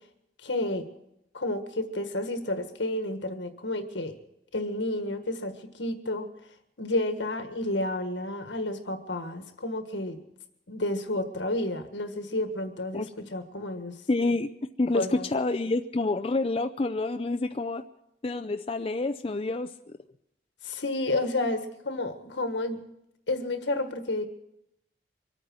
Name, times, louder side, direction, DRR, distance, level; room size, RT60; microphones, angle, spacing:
voice 1, 0.4-0.9 1.3-4.2 4.5-6.3 6.8-10.2 10.7-14.0 14.9-15.3 20.6-22.8 23.3-24.3, left 2 dB, 85° left, 7 dB, 1.6 m, -31 dB
voice 2, 14.1-14.5 14.8-17.8 18.2-19.7, left 2 dB, 30° left, 6 dB, 0.5 m, -28 dB
24.0 x 9.1 x 6.2 m, 0.82 s
head